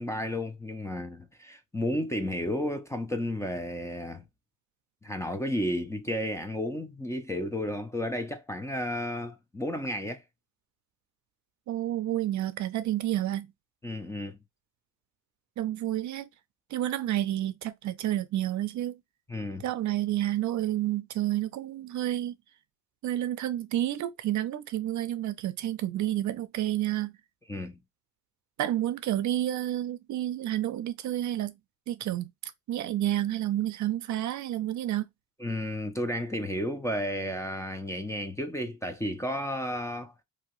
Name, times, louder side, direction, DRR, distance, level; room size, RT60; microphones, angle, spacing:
voice 1, 0.0-4.2 5.0-10.2 13.8-14.4 19.3-19.6 27.5-27.8 35.4-40.1, left 1 dB, 10° left, 0.5 m, -32 dB
voice 2, 11.7-13.5 15.6-16.3 16.7-19.0 19.6-22.4 23.0-27.1 28.6-31.5 31.9-35.0, right 13 dB, 55° right, 0.5 m, -30 dB
2.8 x 2.7 x 3.0 m
cardioid pair, 125°, 34 cm